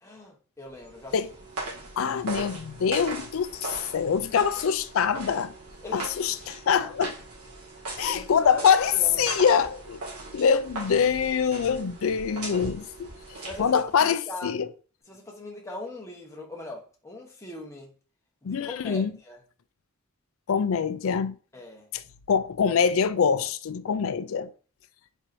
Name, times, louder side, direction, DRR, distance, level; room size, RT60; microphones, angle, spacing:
voice 1, 0.0-1.2 5.8-6.3 6.8-6.9 8.1-8.7 8.9-9.6 13.4-14.5 15.1-17.9 18.4-19.4 21.5-21.9, left 2 dB, 15° left, 1.0 m, -41 dB
sound 1, 0.7-14.0, right 2 dB, 85° right, 2.1 m, -39 dB
voice 2, 2.0-5.5 5.9-7.1 8.0-10.0 10.3-13.1 13.6-14.7 18.4-19.1 20.5-21.3 21.9-22.0 22.3-24.5, left 7 dB, 65° left, 0.4 m, -24 dB
4.5 x 4.3 x 2.6 m
head